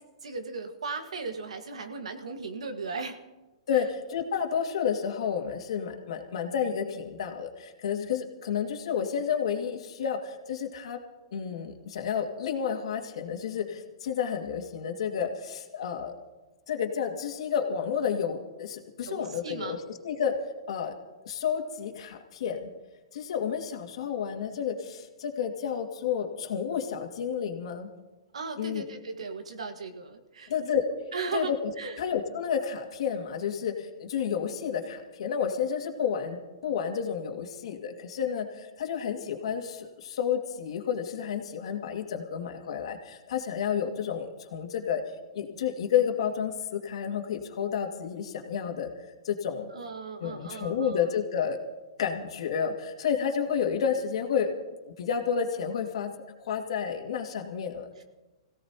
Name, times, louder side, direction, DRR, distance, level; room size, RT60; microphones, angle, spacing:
voice 1, 0.0-3.2 3.7-3.8 19.0-19.8 28.3-30.5 31.1-31.5 31.8-32.0 49.7-51.0, right 4 dB, 90° right, 6 dB, 1.7 m, -37 dB
voice 2, 3.7-11.0 11.3-16.1 16.7-20.3 20.7-20.9 21.2-22.7 23.1-27.9 28.6-28.8 30.5-30.9 31.3-31.7 32.0-45.0 45.3-48.9 49.2-49.7 50.2-51.6 52.0-54.5 54.8-56.1 56.4-57.9, left 7 dB, 70° left, 3 dB, 2.2 m, -30 dB
25.5 x 16.5 x 2.9 m, 1.1 s
hypercardioid pair, 145°, 3 cm